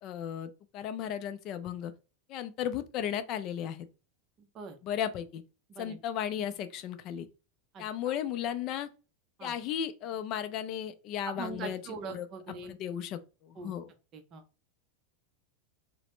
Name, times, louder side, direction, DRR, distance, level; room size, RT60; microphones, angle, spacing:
voice 1, 0.0-1.9 2.3-3.9 4.8-5.4 5.8-7.3 7.8-8.9 9.4-12.3 12.6-13.9, left 9 dB, 40° left, 0.4 m, -35 dB
voice 2, 11.3-12.8 13.6-13.7 14.1-14.4, right 4 dB, 30° right, 0.6 m, -41 dB
2.9 x 2.0 x 3.1 m
supercardioid pair, 140°, 0 cm